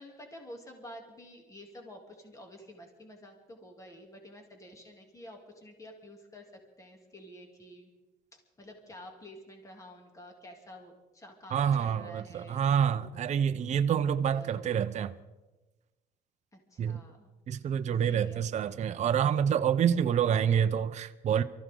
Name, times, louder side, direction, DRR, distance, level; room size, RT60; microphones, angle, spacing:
voice 1, 0.0-7.9 8.3-12.6 14.2-14.7 16.5-17.3 18.0-18.4, equal, 20° left, 2.9 m, -50 dB
voice 2, 11.5-15.1 16.8-17.0 17.5-21.4, right 8 dB, 45° right, 0.6 m, -27 dB
24.0 x 14.5 x 3.8 m
cardioid pair, 110°, 17 cm